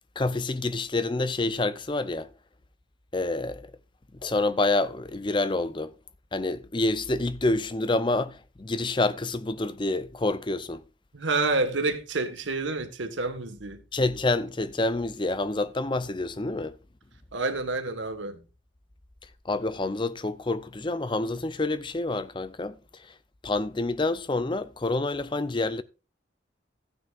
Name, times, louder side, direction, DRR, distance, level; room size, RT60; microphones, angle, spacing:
voice 1, 0.2-2.3 3.1-3.7 4.2-5.9 6.3-10.8 13.9-16.8 19.4-23.1 23.4-25.8, left 2 dB, 25° left, 0.6 m, -28 dB
voice 2, 11.1-13.8 17.3-18.4, right 3 dB, 80° right, 1.5 m, -28 dB
14.5 x 9.3 x 2.5 m
head